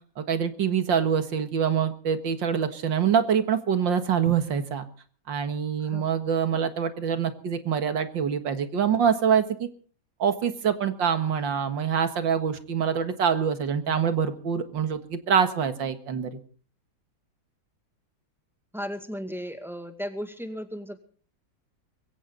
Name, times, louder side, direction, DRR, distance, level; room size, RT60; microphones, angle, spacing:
voice 1, 0.2-4.8 5.3-9.7 10.2-16.4, right 7 dB, 80° right, 9 dB, 2.3 m, -25 dB
voice 2, 18.7-21.0, equal, ahead, 7 dB, 2.0 m, -35 dB
22.0 x 16.0 x 4.0 m, 0.43 s
omnidirectional pair, 2.0 m